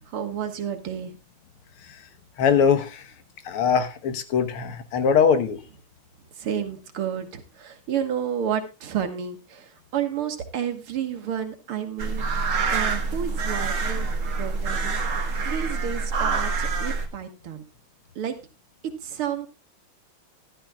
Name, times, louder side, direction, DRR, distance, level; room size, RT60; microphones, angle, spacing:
voice 1, 0.1-1.1 6.4-12.2 12.7-14.1 14.4-17.6 18.2-18.4 19.0-19.5, right 9 dB, 75° right, 2.4 m, -31 dB
voice 2, 2.4-3.1 3.4-5.6, left 6 dB, 80° left, 2.1 m, -22 dB
sound 1, 12.0-17.1, right 4 dB, 45° right, 1.4 m, -26 dB
14.5 x 11.5 x 2.3 m
omnidirectional pair, 2.4 m